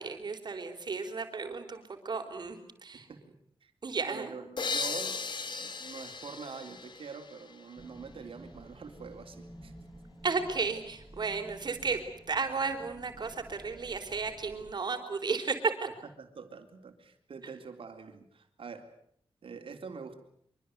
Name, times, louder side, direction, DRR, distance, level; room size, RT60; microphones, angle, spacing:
voice 1, 0.0-3.1 3.8-4.3 10.2-12.0 12.3-15.7, right 4 dB, 50° right, 6 dB, 4.2 m, -33 dB
voice 2, 4.1-9.7 16.2-18.9 19.4-20.2, right 5 dB, 70° right, 5 dB, 3.6 m, -45 dB
sound 1, 4.6-8.1, left 4 dB, 55° left, 1.7 m, -37 dB
sound 2, 7.8-14.7, equal, ahead, 6.7 m, -52 dB
25.0 x 24.5 x 8.2 m, 0.66 s
wide cardioid pair, 175°, 10 cm